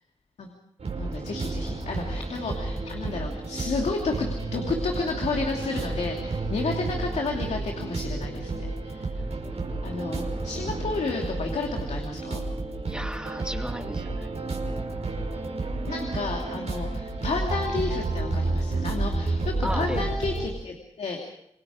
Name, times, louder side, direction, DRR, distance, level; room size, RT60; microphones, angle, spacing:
sound 1, 0.8-20.5, right 3 dB, 70° right, 5.4 m, -31 dB
voice 1, 0.9-9.1 9.8-12.4 15.9-21.2, left 4 dB, 90° left, 1 dB, 2.7 m, -31 dB
voice 2, 12.8-14.3 19.6-20.1, equal, 10° right, 4 dB, 2.6 m, -34 dB
27.5 x 21.5 x 5.0 m, 0.77 s
cardioid pair, 50°, 11 cm